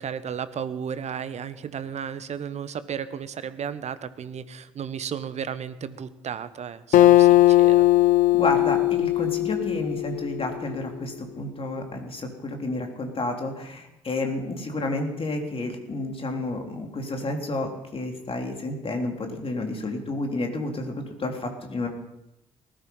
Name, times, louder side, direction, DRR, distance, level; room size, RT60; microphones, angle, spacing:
voice 1, 0.0-7.9, right 7 dB, 45° right, 14 dB, 1.2 m, -34 dB
Acoustic guitar, 6.9-10.5, left 16 dB, 55° left, 0.8 m, -18 dB
voice 2, 8.3-21.9, left 2 dB, 35° left, 3 dB, 3.6 m, -30 dB
19.5 x 13.0 x 5.6 m, 0.90 s
figure-of-eight pair, 45°, 16 cm